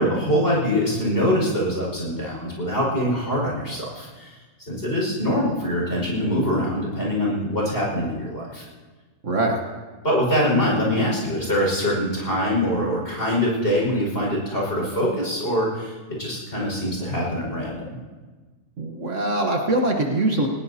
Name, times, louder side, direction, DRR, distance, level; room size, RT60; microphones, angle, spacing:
voice 1, 0.0-4.4 4.7-8.6 10.0-17.9, equal, 40° left, -3 dB, 5.7 m, -23 dB
voice 2, 9.2-9.6 18.8-20.5, right 2 dB, 50° right, 2 dB, 1.6 m, -22 dB
19.5 x 19.5 x 2.8 m, 1.3 s
omnidirectional pair, 1.7 m